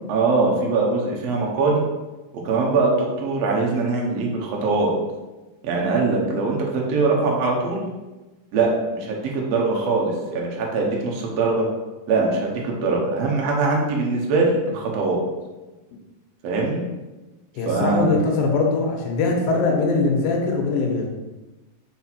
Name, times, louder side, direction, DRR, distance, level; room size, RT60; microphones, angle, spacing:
voice 1, 0.1-1.8 2.4-4.9 5.6-7.8 8.5-11.7 12.1-15.2 16.4-16.8 17.6-18.2, right 3 dB, 65° right, -2 dB, 1.6 m, -22 dB
voice 2, 17.6-21.1, left 3 dB, 80° left, 1 dB, 2.6 m, -21 dB
5.2 x 4.4 x 4.2 m, 1.1 s
omnidirectional pair, 4.1 m